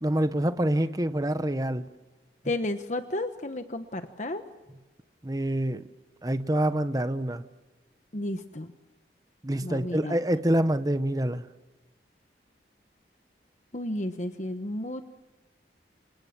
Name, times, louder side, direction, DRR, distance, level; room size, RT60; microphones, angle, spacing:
voice 1, 0.0-1.8 5.2-5.8 6.2-7.4 9.4-11.4, right 1 dB, 20° right, 11 dB, 0.9 m, -26 dB
voice 2, 2.4-4.4 8.1-8.7 9.6-10.2 13.7-15.0, left 1 dB, 40° left, 8 dB, 1.1 m, -32 dB
28.5 x 27.0 x 7.4 m, 1.1 s
head